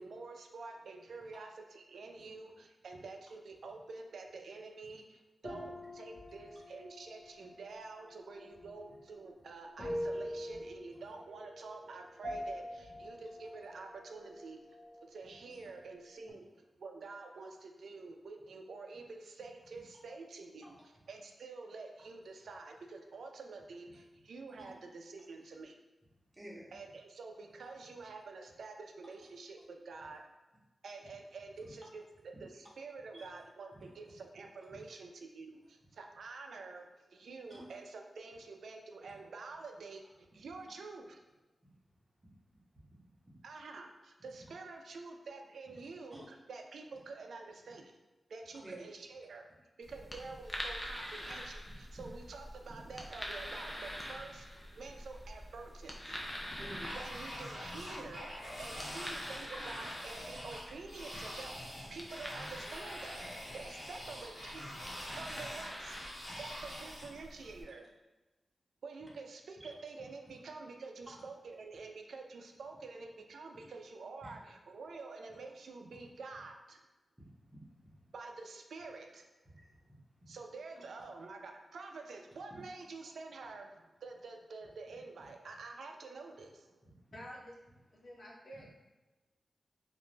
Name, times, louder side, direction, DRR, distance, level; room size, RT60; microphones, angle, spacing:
voice 1, 0.0-16.5 16.8-20.8 21.1-25.8 26.7-30.2 30.8-41.2 43.4-48.0 48.3-49.4 49.8-54.5 54.7-56.2 57.0-58.3 58.6-61.5 61.9-64.7 65.1-66.1 66.4-67.9 68.8-76.8 78.1-79.3 80.3-86.8, right 3 dB, 90° right, 3 dB, 0.3 m, -48 dB
sound 1, 5.4-15.3 15.6-16.3, equal, 30° left, 0.9 m, -45 dB
voice 2, 26.3-26.7 33.1-33.3 33.7-33.8 37.5-37.6 42.8-42.9 46.1-46.3 48.6-48.8 51.0-51.1 56.5-56.9 57.7-58.1 59.5-59.7 60.5-60.6 60.9-61.3 65.0-65.2 66.3-66.4 69.6-69.7 74.2-74.3 75.9-76.0 77.2-77.7 78.0-78.1 79.5-79.7 80.2-80.3 82.5-82.6 88.5-88.6, equal, 20° right, -5 dB, 0.7 m, -51 dB
sound 2, 49.8-67.6, equal, 15° left, 0.3 m, -46 dB
sound 3, 56.8-67.1, equal, 90° left, 1.1 m, -45 dB
voice 3, 87.1-87.6 87.9-88.7, equal, 70° left, -4 dB, 0.7 m, -49 dB
2.4 x 2.1 x 3.1 m, 1.1 s
wide cardioid pair, 160°, 0 cm